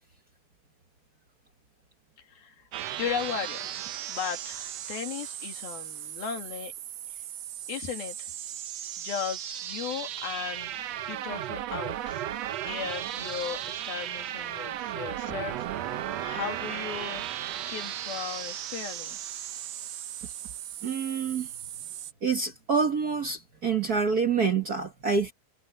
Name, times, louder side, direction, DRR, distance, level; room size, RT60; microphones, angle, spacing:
voice 1, 2.2-2.6 3.0-3.8 4.1-6.7 7.1-7.2 7.7-8.3 9.0-12.2 12.6-19.2, left 8 dB, 80° left, 4.2 m, -36 dB
sound 1, 2.7-22.1, right 12 dB, 80° right, 1.5 m, -36 dB
voice 2, 20.8-21.5 22.2-25.3, right 5 dB, 60° right, 0.9 m, -27 dB
omnidirectional pair, 4.2 m